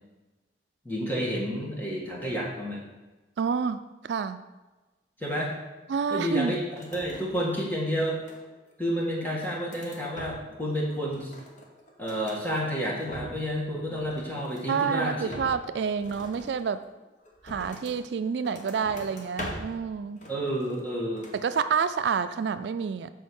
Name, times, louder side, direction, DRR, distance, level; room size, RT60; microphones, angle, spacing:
voice 1, 0.9-2.8 5.2-5.6 6.1-8.2 8.8-11.3 12.0-15.3 20.3-21.3, equal, 10° left, -4 dB, 1.7 m, -30 dB
voice 2, 3.4-4.4 5.9-6.5 14.7-16.8 17.4-20.2 21.3-23.1, right 6 dB, 70° right, 11 dB, 0.3 m, -28 dB
sound 1, 6.7-7.7 8.0-8.7 9.2-10.7 11.0-12.4 12.9-13.6 13.9-14.8 15.3-18.0 18.4-19.8 20.2-20.9 21.2-21.5, left 1 dB, 45° left, 1.2 m, -43 dB
7.3 x 4.5 x 6.2 m, 1.2 s
head